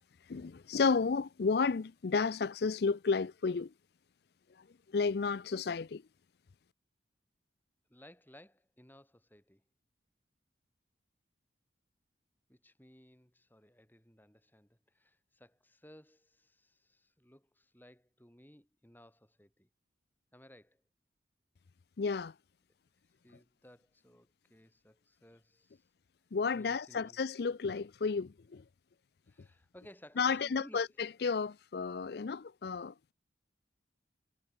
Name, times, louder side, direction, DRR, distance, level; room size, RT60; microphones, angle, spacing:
voice 1, 0.3-3.7 4.9-6.0 22.0-22.3 26.3-28.6 30.2-30.9 31.2-33.1, left 5 dB, 55° left, 0.4 m, -32 dB
voice 2, 7.9-9.6 12.5-19.7 20.3-20.8 23.2-25.8 26.5-27.2 29.3-31.0, equal, 10° left, 7.6 m, -58 dB
head